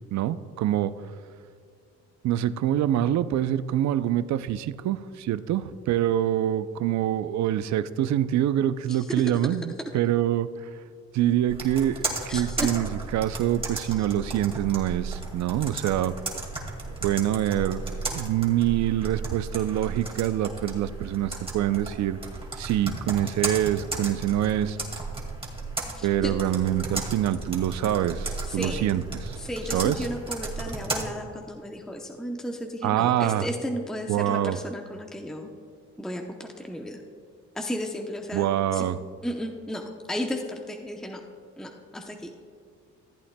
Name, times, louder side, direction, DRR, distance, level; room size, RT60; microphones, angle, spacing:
voice 1, 0.1-0.9 2.2-10.5 11.1-16.1 17.0-17.8 18.1-22.2 22.6-24.8 26.0-29.4 29.7-30.0 32.8-33.5 34.1-34.6 38.3-39.0, right 12 dB, 65° right, 14 dB, 0.5 m, -25 dB
Computer keyboard, 11.5-31.0, right 3 dB, 20° right, 2.0 m, -34 dB
voice 2, 12.3-12.7 13.8-14.0 26.0-26.3 28.5-28.9 29.4-35.5 36.0-37.0 37.5-38.5 38.7-38.9 39.2-41.2 41.6-42.3, equal, ahead, 2 dB, 0.7 m, -34 dB
14.5 x 8.5 x 2.2 m, 2.4 s
cardioid pair, 90°, 30 cm